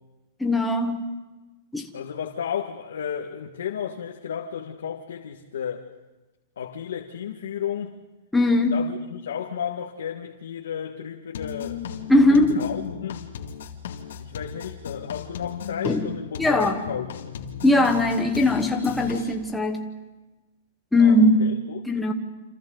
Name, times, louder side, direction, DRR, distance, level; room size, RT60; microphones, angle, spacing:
voice 1, 0.4-1.0 1.7-1.9 8.3-8.8 12.1-12.6 15.8-16.1 16.4-16.8 17.6-19.9 20.9-21.5 21.9-22.1, left 2 dB, 5° left, 1.2 m, -20 dB
voice 2, 1.9-5.8 6.6-8.0 8.7-11.8 12.3-13.2 14.2-17.3 21.0-21.8, left 8 dB, 85° left, 1.6 m, -33 dB
sound 1, 11.3-19.3, left 7 dB, 65° left, 2.2 m, -36 dB
29.5 x 27.0 x 3.9 m
hypercardioid pair, 180°, 0 cm